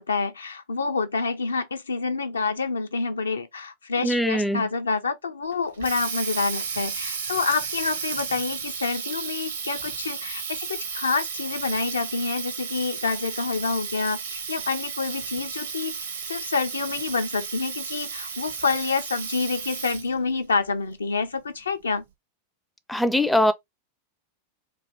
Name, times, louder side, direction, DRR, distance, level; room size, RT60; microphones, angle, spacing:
voice 1, 0.0-15.9 16.3-22.0, left 4 dB, 75° left, 0.5 m, -27 dB
voice 2, 4.0-4.6 22.9-23.5, left 1 dB, 5° left, 0.4 m, -21 dB
Water tap faucet, 5.5-20.2, right 6 dB, 70° right, 0.9 m, -33 dB
3.2 x 2.7 x 4.0 m
figure-of-eight pair, 90°, 0 cm